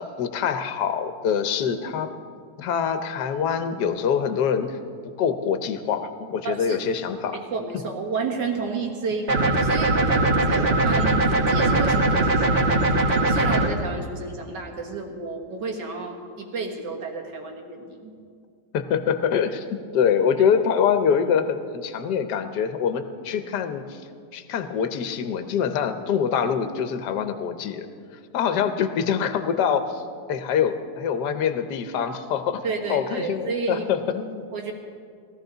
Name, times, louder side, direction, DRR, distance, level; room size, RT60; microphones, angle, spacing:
voice 1, 0.0-2.1 2.6-4.8 5.0-7.4 18.7-19.6 19.9-24.0 24.3-27.9 28.3-30.0 30.3-32.6 32.9-34.4, left 7 dB, 70° left, 9 dB, 1.4 m, -24 dB
voice 2, 6.4-6.8 7.3-10.1 10.4-12.7 13.3-18.1 32.6-34.0 34.5-34.7, right 4 dB, 70° right, 1 dB, 2.2 m, -31 dB
sound 1, 9.3-13.7, right 2 dB, 40° right, 1.3 m, -20 dB
19.5 x 14.0 x 3.9 m, 2.2 s
omnidirectional pair, 1.9 m